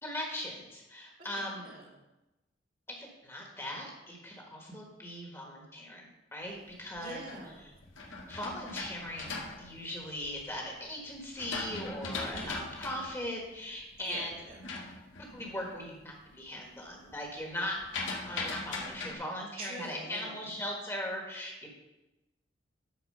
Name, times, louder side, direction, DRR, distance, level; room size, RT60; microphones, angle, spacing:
voice 1, 0.0-1.6 2.9-7.2 8.3-14.3 15.2-17.8 18.2-21.7, left 1 dB, 15° left, 0 dB, 1.5 m, -39 dB
voice 2, 1.3-2.0 7.0-7.7 12.3-12.6 14.0-14.6 19.6-20.5, right 2 dB, 50° right, 0 dB, 2.0 m, -45 dB
sound 1, 6.7-10.6 11.1-15.9 16.2-16.7 16.9-19.1, left 3 dB, 85° left, 1.5 m, -40 dB
10.5 x 4.4 x 6.6 m, 1.0 s
head